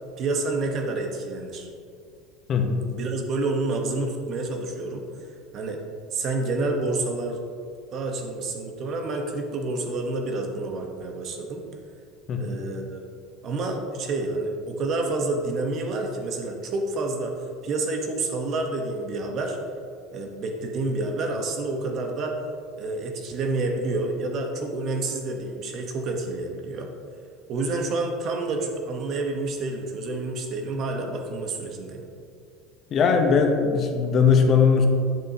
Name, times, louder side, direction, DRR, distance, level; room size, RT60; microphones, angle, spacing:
voice 1, 0.2-1.7 2.9-5.0 5.5-5.8 6.1-7.4 7.9-11.6 12.4-13.0 13.4-17.3 17.6-19.6 20.1-22.4 22.8-26.9 27.5-32.0, right 2 dB, 45° right, 3 dB, 1.1 m, -28 dB
voice 2, 2.5-2.9 12.3-12.6 32.9-34.9, left 5 dB, 40° left, 4 dB, 0.8 m, -20 dB
8.5 x 6.5 x 2.8 m, 2.3 s
supercardioid pair, 120°, 0 cm